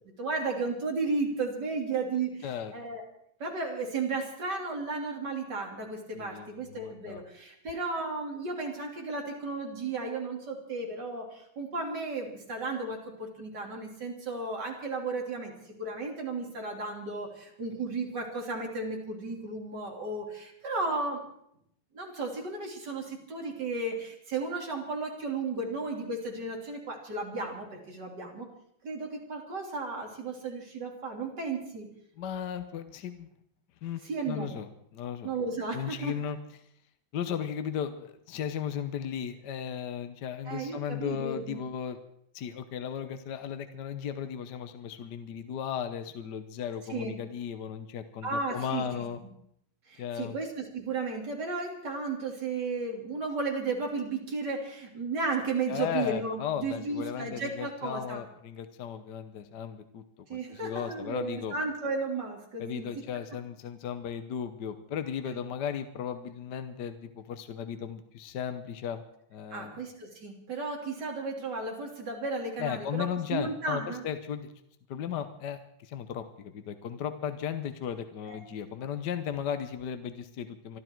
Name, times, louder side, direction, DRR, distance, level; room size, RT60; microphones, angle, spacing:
voice 1, 0.2-3.0 3.4-15.5 15.8-21.2 21.9-28.5 28.8-31.9 34.0-34.5 35.2-36.2 40.5-41.6 46.9-47.2 48.2-48.8 49.9-58.2 60.3-62.9 69.5-74.0 78.3-78.4, right 3 dB, 55° right, 0 dB, 3.7 m, -34 dB
voice 2, 2.4-2.7 6.1-7.2 32.2-33.3 33.8-34.0 34.3-35.3 35.7-36.4 37.1-42.0 42.3-49.2 50.0-50.4 55.7-60.0 60.3-61.5 62.6-69.0 69.3-69.8 72.6-74.5 74.9-80.8, left 8 dB, 60° left, 9 dB, 1.4 m, -36 dB
25.0 x 12.5 x 4.6 m, 0.72 s
omnidirectional pair, 2.3 m